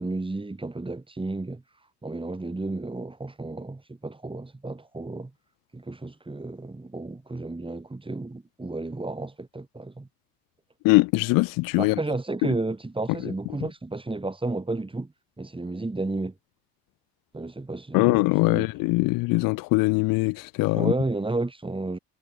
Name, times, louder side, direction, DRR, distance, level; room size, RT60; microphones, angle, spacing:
voice 1, 0.0-1.6 2.0-5.3 5.7-10.1 11.8-15.1 15.4-16.3 17.3-18.7 20.7-22.0, right 2 dB, 15° right, 7.9 m, -32 dB
voice 2, 10.8-12.0 13.2-13.3 17.9-20.9, left 24 dB, 80° left, 1.2 m, -22 dB
supercardioid pair, 80°, 33 cm